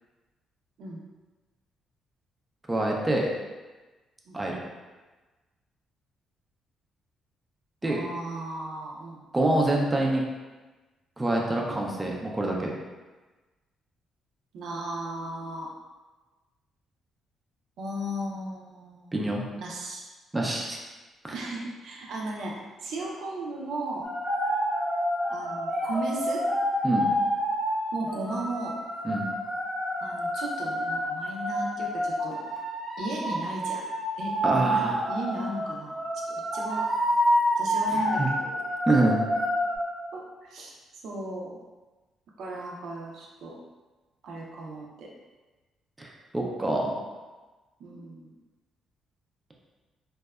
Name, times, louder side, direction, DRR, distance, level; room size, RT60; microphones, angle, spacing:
voice 1, 2.7-3.3 4.3-4.6 7.8-8.0 9.3-10.2 11.2-12.7 19.1-19.4 20.3-20.8 21.2-21.3 26.8-27.1 29.0-29.3 34.4-35.0 37.9-38.3 38.9-39.2 46.0-46.1 46.3-47.0, right 2 dB, 15° right, -2 dB, 0.4 m, -25 dB
voice 2, 7.8-9.2 14.5-15.7 17.8-19.1 19.6-20.0 21.3-24.1 25.3-26.4 27.9-28.8 30.0-32.4 33.0-33.8 34.2-36.2 36.5-36.9 37.6-38.6 40.1-40.7 41.0-41.6 42.4-43.6 44.2-45.1 47.8-48.3, right 1 dB, 75° right, -2 dB, 0.4 m, -36 dB
sound 1, 24.0-39.8, equal, 10° left, 0.8 m, -28 dB
2.7 x 2.1 x 2.3 m, 1.2 s
cardioid pair, 90°, 0 cm